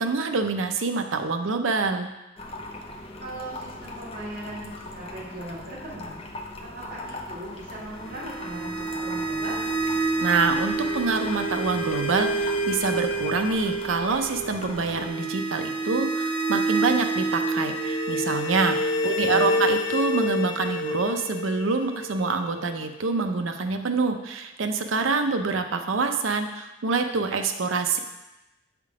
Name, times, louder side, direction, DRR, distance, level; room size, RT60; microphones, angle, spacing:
voice 1, 0.0-2.1 10.2-28.0, right 4 dB, 80° right, 6 dB, 0.6 m, -26 dB
sound 1, 2.4-15.1, left 2 dB, 30° left, 0.6 m, -40 dB
voice 2, 3.2-9.6 19.0-19.6, right 1 dB, 50° right, -5 dB, 1.7 m, -39 dB
sound 2, 8.0-23.0, right 1 dB, 70° left, 1.2 m, -28 dB
7.5 x 3.7 x 4.8 m, 1.0 s
head